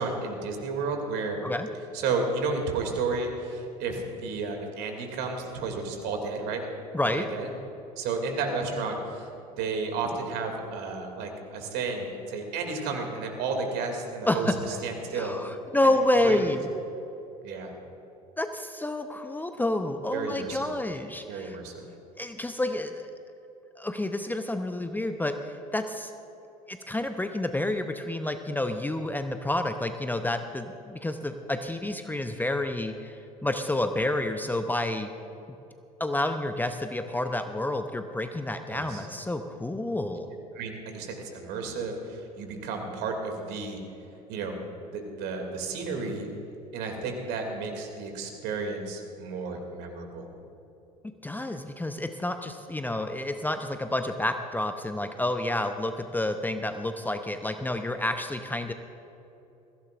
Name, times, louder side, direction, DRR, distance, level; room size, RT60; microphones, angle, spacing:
voice 1, 0.0-1.4 1.9-6.6 7.2-7.5 8.0-9.3 9.6-15.4 16.2-16.5 17.4-17.7 20.1-20.7 21.3-21.9 38.7-39.1 40.5-43.8 44.3-44.6 44.9-46.3 46.7-50.3, right 4 dB, 55° right, 3 dB, 2.7 m, -32 dB
voice 2, 6.9-7.3 14.3-14.6 15.1-16.7 18.4-21.6 22.2-23.1 23.8-26.1 26.7-35.1 36.0-40.3 51.2-58.7, left 1 dB, 10° left, 7 dB, 0.7 m, -29 dB
21.0 x 16.0 x 2.6 m, 2.9 s
figure-of-eight pair, 65°, 20 cm